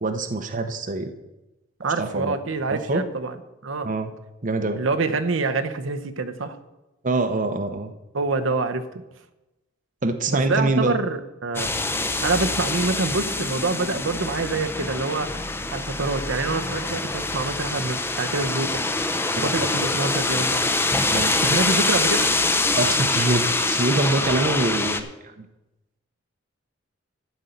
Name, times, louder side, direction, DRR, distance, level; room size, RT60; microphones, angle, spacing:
voice 1, 0.0-1.1 2.0-2.4 2.7-3.0 3.8-4.1 4.4-4.8 7.0-7.9 10.0-11.0 21.1-21.3 22.8-25.5, right 2 dB, 40° right, 8 dB, 0.8 m, -24 dB
voice 2, 1.8-3.4 3.6-3.9 4.8-6.6 8.1-8.8 10.3-11.7 12.2-15.3 15.7-18.9 19.4-20.6 21.4-22.3, right 3 dB, 75° right, 7 dB, 0.9 m, -26 dB
sound 1, 11.5-25.0, left 2 dB, 10° left, 0.7 m, -24 dB
12.5 x 5.4 x 8.0 m, 0.99 s
head